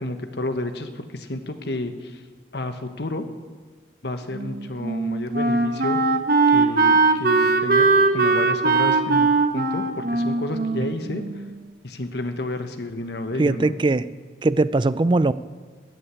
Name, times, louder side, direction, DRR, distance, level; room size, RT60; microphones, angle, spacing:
voice 1, 0.0-2.2 2.5-3.3 4.0-6.0 6.5-9.3 9.5-11.2 11.8-13.7, left 1 dB, 65° left, 7 dB, 1.3 m, -30 dB
Wind instrument woodwind instrument, 4.3-11.6, right 3 dB, 55° right, 1.1 m, -20 dB
voice 2, 13.4-14.1 14.4-15.3, right 2 dB, 25° right, 15 dB, 0.4 m, -20 dB
13.5 x 8.9 x 9.8 m, 1.5 s
head